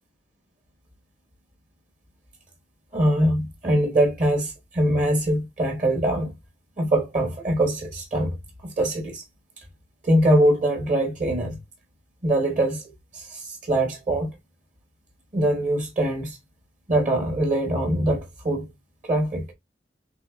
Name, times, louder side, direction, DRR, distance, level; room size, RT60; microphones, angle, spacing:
voice 1, 2.9-6.3 6.8-8.3 8.6-9.2 10.0-11.6 12.2-14.3 15.3-16.4 16.9-18.7 19.0-19.4, right 1 dB, 45° right, 1.1 m, -23 dB
6.9 x 2.7 x 2.3 m
head